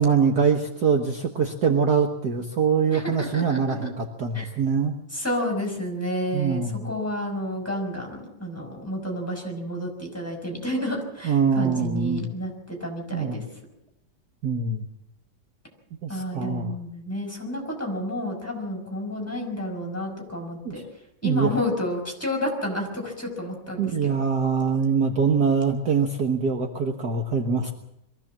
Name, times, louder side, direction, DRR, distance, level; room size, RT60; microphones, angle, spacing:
voice 1, 0.0-5.0 6.3-6.9 11.2-12.3 13.1-13.4 14.4-14.8 16.0-16.7 20.7-20.8 21.2-21.5 23.8-27.7, right 6 dB, 55° right, 3 dB, 1.9 m, -23 dB
voice 2, 2.9-3.9 4.3-4.5 5.1-13.4 16.1-20.8 21.2-24.1, equal, 5° left, 1 dB, 5.6 m, -30 dB
23.0 x 15.0 x 7.5 m, 0.80 s
omnidirectional pair, 2.1 m